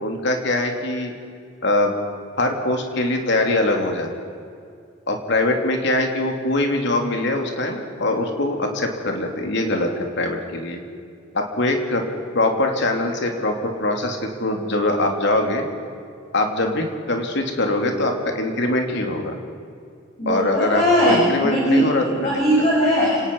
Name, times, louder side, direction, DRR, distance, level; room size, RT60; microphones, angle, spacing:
voice 1, 0.0-1.1 1.6-1.9 2.4-4.1 5.1-10.8 11.3-12.0 12.3-15.6 16.3-19.4 20.3-22.4, left 2 dB, 60° left, 3 dB, 3.1 m, -22 dB
voice 2, 20.2-23.3, equal, 35° left, -6 dB, 6.2 m, -19 dB
29.5 x 18.5 x 5.5 m, 2.3 s
head